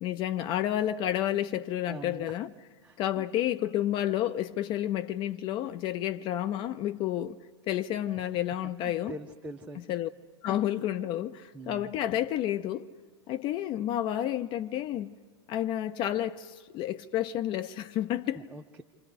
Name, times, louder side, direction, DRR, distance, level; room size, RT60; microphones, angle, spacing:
voice 1, 0.0-2.5 3.0-7.4 7.7-9.2 9.9-10.1 10.4-12.9 13.3-15.2 15.5-18.4, left 12 dB, 35° left, 0.6 m, -30 dB
voice 2, 1.9-2.3 2.8-3.3 8.2-8.3 8.6-9.8 11.5-11.9 18.3-18.8, right 2 dB, 10° right, 0.8 m, -44 dB
28.5 x 26.0 x 5.0 m
figure-of-eight pair, 90°, 15 cm